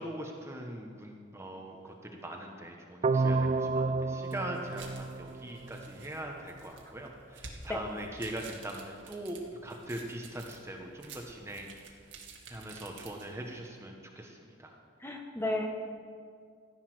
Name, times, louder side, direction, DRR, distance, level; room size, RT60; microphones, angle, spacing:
voice 1, 0.0-11.8 12.5-14.8, right 1 dB, 15° right, 1 dB, 1.2 m, -41 dB
sound 1, 3.0-6.0, right 3 dB, 35° right, 0.3 m, -30 dB
sound 2, 4.2-13.6, right 4 dB, 70° right, 1.9 m, -51 dB
voice 2, 15.0-15.7, left 1 dB, 15° left, 2 dB, 1.3 m, -33 dB
14.5 x 9.9 x 6.2 m, 2.1 s
head